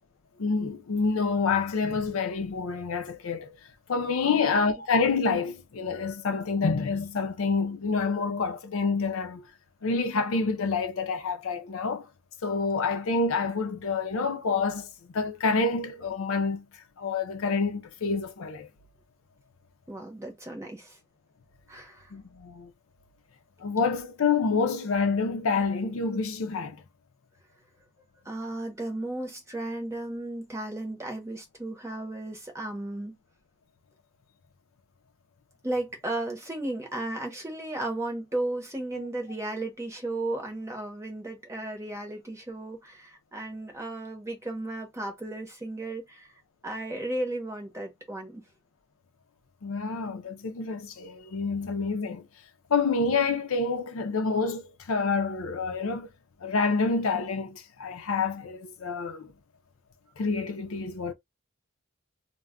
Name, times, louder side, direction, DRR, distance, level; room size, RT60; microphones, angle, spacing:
voice 1, 0.4-3.6 3.9-9.5 9.8-12.1 12.4-18.7 22.1-22.7 23.6-26.8 38.9-39.1 49.6-52.3 52.7-56.1 56.4-59.3 60.2-61.1, left 4 dB, 70° left, 0.5 m, -28 dB
voice 2, 19.9-21.0 21.7-22.1 28.2-33.2 35.6-46.3 46.6-48.4, right 1 dB, 15° right, 0.8 m, -34 dB
2.2 x 2.1 x 3.5 m
head